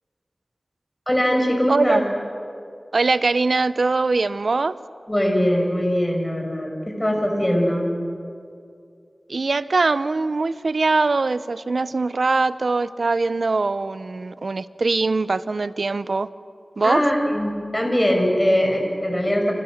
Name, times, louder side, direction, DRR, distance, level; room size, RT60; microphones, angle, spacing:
voice 1, 1.1-2.0 5.1-7.9 16.8-19.5, equal, 15° left, 2 dB, 6.3 m, -21 dB
voice 2, 1.7-2.0 2.9-4.8 9.3-16.3 16.8-17.0, right 3 dB, 75° right, 15 dB, 0.8 m, -22 dB
29.5 x 27.0 x 6.6 m, 2.4 s
wide cardioid pair, 65°, 0 cm